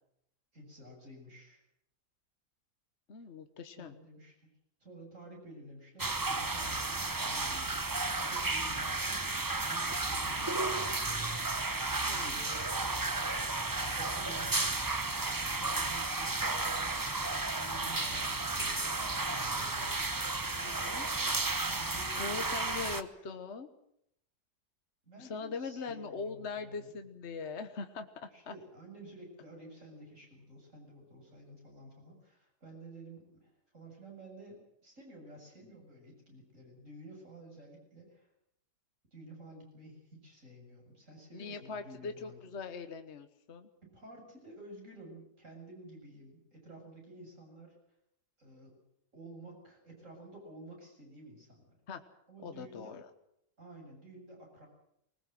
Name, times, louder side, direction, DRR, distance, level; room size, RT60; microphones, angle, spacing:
voice 1, 0.5-1.6 3.6-4.3 4.8-11.2 11.9-12.7 13.8-15.0 15.5-17.1 17.6-20.0 21.6-23.2 25.0-26.9 28.3-38.3 39.1-42.4 43.8-47.8 48.4-48.8 49.1-51.8 52.3-53.0 53.6-54.7, right 1 dB, 50° right, 1 dB, 7.8 m, -52 dB
voice 2, 3.1-3.9 10.4-10.5 12.1-12.4 20.6-21.1 22.1-23.7 25.2-28.5 41.3-43.7 51.9-52.0 52.4-53.1, left 4 dB, 45° left, 8 dB, 1.4 m, -41 dB
sound 1, 6.0-23.0, right 3 dB, 20° right, 0.5 m, -33 dB
21.0 x 19.5 x 7.7 m, 0.75 s
omnidirectional pair, 1.7 m